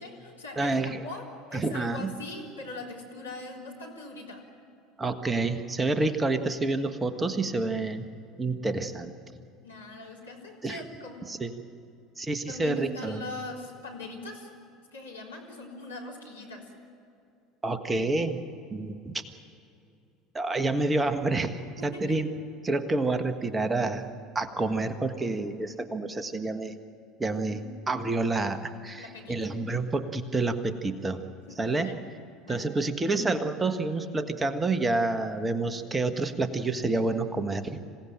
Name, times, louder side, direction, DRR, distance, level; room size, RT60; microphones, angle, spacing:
voice 1, 0.0-0.8 1.0-4.5 9.6-11.3 12.5-14.5 14.9-16.7 21.8-22.2 27.3-27.8 28.9-29.5 31.4-32.0 32.4-32.8, left 2 dB, 85° left, -3 dB, 3.9 m, -41 dB
voice 2, 0.6-1.0 1.5-2.1 5.0-8.1 8.4-9.1 10.6-10.8 11.3-11.5 12.2-13.2 17.6-18.4 18.7-19.2 20.3-22.3 22.6-24.1 24.3-26.8 27.2-27.6 27.9-31.2 31.6-31.9 32.5-37.8, right 2 dB, 15° right, 9 dB, 1.4 m, -28 dB
26.5 x 17.0 x 8.9 m, 2.5 s
figure-of-eight pair, 65°, 0 cm